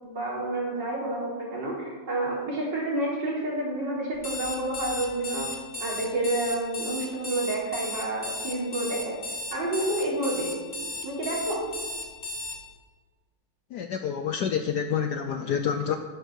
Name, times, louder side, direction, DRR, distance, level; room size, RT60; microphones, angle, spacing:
voice 1, 0.0-5.5 5.8-9.2 9.5-10.7 11.0-11.6, right 2 dB, 55° right, -5 dB, 4.5 m, -29 dB
Alarm, 4.1-12.6, left 1 dB, 20° left, 1.4 m, -35 dB
voice 2, 13.7-16.0, left 7 dB, 70° left, 7 dB, 1.0 m, -28 dB
11.5 x 10.5 x 6.3 m, 1.5 s
omnidirectional pair, 2.3 m